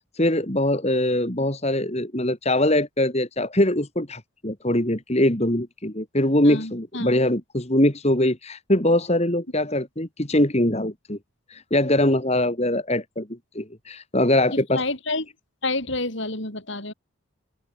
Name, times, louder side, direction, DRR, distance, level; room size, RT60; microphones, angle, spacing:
voice 1, 0.1-11.2 11.5-13.3 13.5-14.8, left 1 dB, 30° left, 3.0 m, -22 dB
voice 2, 6.4-7.2 14.5-15.3 15.6-16.9, left 2 dB, 60° left, 6.7 m, -29 dB
open air
head